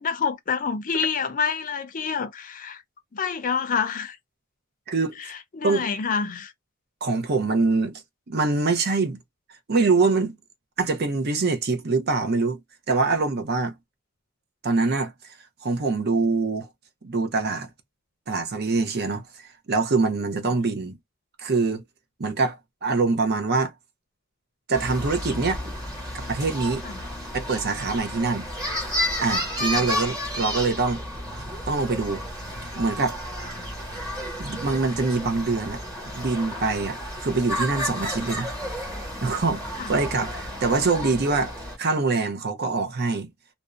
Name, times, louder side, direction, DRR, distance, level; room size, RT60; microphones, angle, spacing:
voice 1, 0.0-2.8 3.1-4.2 5.6-6.5 20.5-20.6 26.8-27.0 29.8-29.9 33.6-33.7 39.8-39.9, left 6 dB, 40° left, 0.5 m, -27 dB
voice 2, 4.9-5.2 5.6-5.9 7.0-8.0 8.3-9.2 9.7-10.3 10.8-12.6 12.9-13.7 14.6-15.1 15.6-16.7 17.0-17.7 18.3-21.0 21.4-21.8 22.2-22.6 22.8-23.7 24.7-25.6 26.3-26.8 27.3-28.4 29.2-31.0 31.7-32.2 32.8-33.2 34.4-35.8 36.1-38.5 39.2-41.5 41.8-43.3, right 3 dB, 55° right, 0.6 m, -24 dB
sound 1, 24.7-41.8, left 1 dB, 15° right, 1.4 m, -32 dB
2.6 x 2.1 x 2.3 m
head